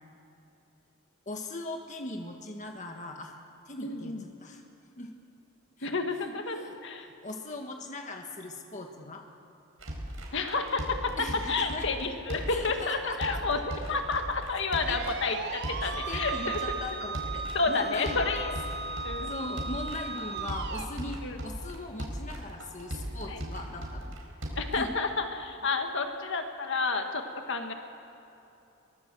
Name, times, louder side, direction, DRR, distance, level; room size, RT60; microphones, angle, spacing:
voice 1, 1.3-3.4 3.7-4.1 4.4-4.6 5.0-5.1 5.8-5.9 6.6-6.7 7.2-9.2 11.2-11.9 12.5-13.4 14.9-15.0 15.8-18.2 19.2-24.1 24.8-24.9, left 2 dB, 35° left, 3 dB, 1.5 m, -39 dB
voice 2, 3.8-4.2 5.8-7.1 10.3-11.2 11.5-17.0 17.5-18.5 19.0-19.3 21.2-21.4 23.3-23.4 24.5-27.7, left 3 dB, 60° left, 5 dB, 1.8 m, -30 dB
sound 1, 9.8-24.8, equal, 85° right, 4.5 m, -38 dB
sound 2, 14.9-20.9, right 4 dB, 55° right, 1.6 m, -37 dB
22.5 x 20.0 x 7.8 m, 2.9 s
head